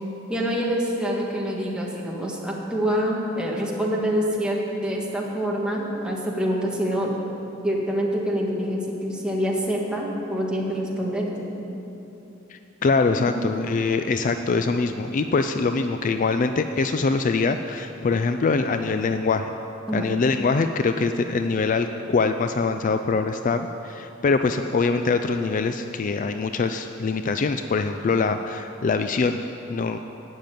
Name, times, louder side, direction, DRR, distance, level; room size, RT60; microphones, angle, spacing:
voice 1, 0.3-7.1 7.6-11.6 13.2-13.5 19.9-20.1, equal, 5° right, -3 dB, 1.7 m, -26 dB
voice 2, 12.5-19.5 19.9-29.4 29.7-30.0, left 4 dB, 40° left, 8 dB, 0.4 m, -23 dB
11.5 x 7.3 x 9.2 m, 3.0 s
head